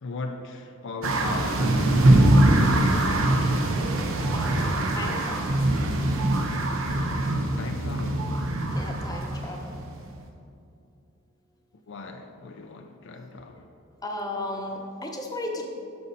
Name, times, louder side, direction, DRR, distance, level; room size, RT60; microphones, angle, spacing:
voice 1, 0.0-2.5 7.6-8.3 11.9-13.7, left 2 dB, 60° left, 0.5 m, -37 dB
sound 1, 1.0-10.1, right 1 dB, 70° right, 0.9 m, -23 dB
voice 2, 3.6-5.6 8.7-9.7 14.0-15.7, left 1 dB, 20° left, 0.9 m, -36 dB
13.0 x 5.5 x 4.1 m
head